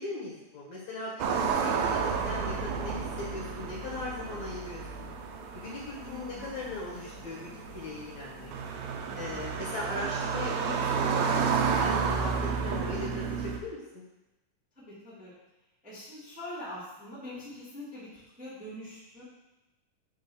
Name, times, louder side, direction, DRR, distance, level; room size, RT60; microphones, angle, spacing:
voice 1, 0.0-5.1 5.5-8.5 9.2-13.8, left 2 dB, 65° left, -5 dB, 2.5 m, -39 dB
sound 1, 1.2-13.6, right 6 dB, 80° right, 1.7 m, -31 dB
voice 2, 1.6-2.0 6.0-6.5 9.1-9.4 10.0-10.1 12.5-13.0 14.7-15.3 15.8-19.2, left 1 dB, 5° right, -9 dB, 1.3 m, -44 dB
5.4 x 3.8 x 5.5 m, 0.99 s
omnidirectional pair, 3.8 m